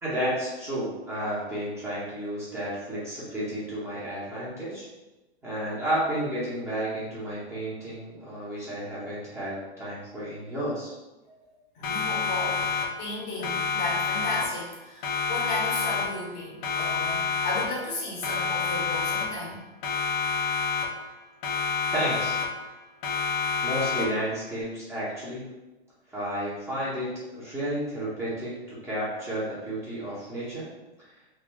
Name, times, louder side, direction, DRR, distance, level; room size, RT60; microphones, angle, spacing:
voice 1, 0.0-4.9 5.4-10.9 21.9-22.3 23.6-25.5 26.1-30.7, right 1 dB, 10° right, -10 dB, 0.8 m, -32 dB
voice 2, 11.7-19.6, left 2 dB, 50° left, -4 dB, 1.1 m, -34 dB
Siren, 11.8-13.1 13.4-14.7 15.0-16.3 16.6-17.9 18.2-19.5 19.8-21.1 21.4-22.7 23.0-24.3, left 5 dB, 30° left, 0.4 m, -29 dB
3.3 x 2.3 x 2.2 m, 1.1 s
hypercardioid pair, 130°, 29 cm